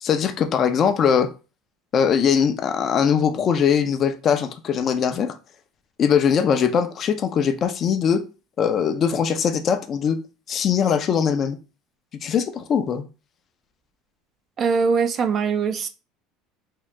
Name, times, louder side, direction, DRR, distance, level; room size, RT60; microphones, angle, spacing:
voice 1, 0.0-1.3 1.9-5.4 6.0-8.2 8.6-10.2 10.5-11.6 12.2-13.1, left 7 dB, 35° left, 0.6 m, -21 dB
voice 2, 14.6-15.9, right 5 dB, 30° right, 0.5 m, -21 dB
3.7 x 2.7 x 3.3 m
cardioid pair, 140°, 0 cm